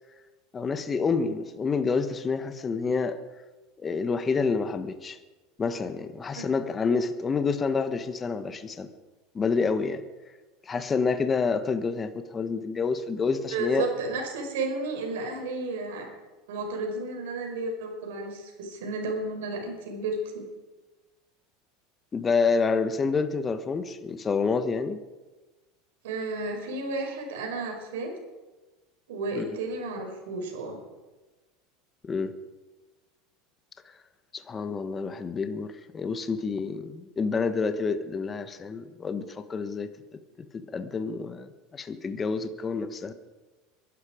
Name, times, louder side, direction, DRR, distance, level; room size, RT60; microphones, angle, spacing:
voice 1, 0.5-3.2 3.8-5.2 5.6-8.9 9.3-10.0 10.7-13.8 22.1-25.0 29.3-29.6 32.0-32.3 34.3-39.9 40.5-43.1, left 4 dB, 20° left, 10 dB, 1.3 m, -28 dB
voice 2, 13.5-16.1 16.5-20.5 26.0-28.1 29.1-30.8, right 3 dB, 85° right, 2 dB, 5.3 m, -32 dB
23.0 x 12.0 x 5.1 m, 1.2 s
supercardioid pair, 130°, 0 cm